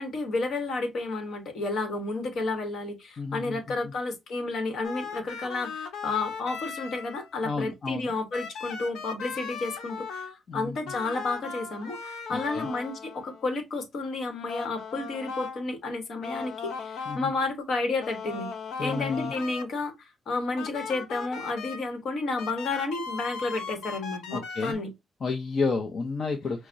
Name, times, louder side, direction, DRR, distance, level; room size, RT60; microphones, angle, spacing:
voice 1, 0.0-18.5 18.8-24.9, left 3 dB, 60° left, 1.2 m, -31 dB
voice 2, 3.2-3.6 3.8-3.9 7.4-8.1 10.5-10.8 12.3-12.7 17.1-17.3 18.8-19.3 24.3-24.8 25.2-26.7, left 4 dB, 40° left, 0.6 m, -31 dB
sound 1, 4.8-7.4 8.3-10.3 10.9-13.5 14.5-15.6 16.2-17.2 18.0-19.6 20.6-21.8 22.4-24.7, left 5 dB, 85° left, 0.8 m, -37 dB
5.7 x 2.0 x 2.5 m
cardioid pair, 125°, 0 cm